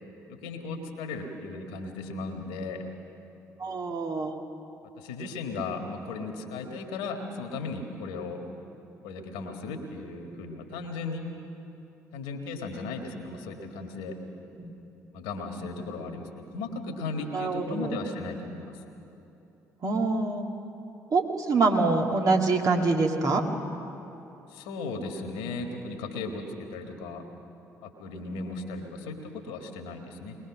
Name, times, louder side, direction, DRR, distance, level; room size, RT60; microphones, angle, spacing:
voice 1, 0.3-2.8 5.0-8.4 9.0-11.2 12.1-14.2 15.1-18.7 24.5-27.2 27.8-30.4, left 3 dB, 75° left, 4 dB, 1.9 m, -36 dB
voice 2, 3.6-4.3 14.5-14.7 17.3-17.9 19.8-20.5 21.1-23.4, right 3 dB, 45° right, 1 dB, 2.3 m, -25 dB
21.5 x 20.5 x 6.3 m, 2.9 s
hypercardioid pair, 50°, 8 cm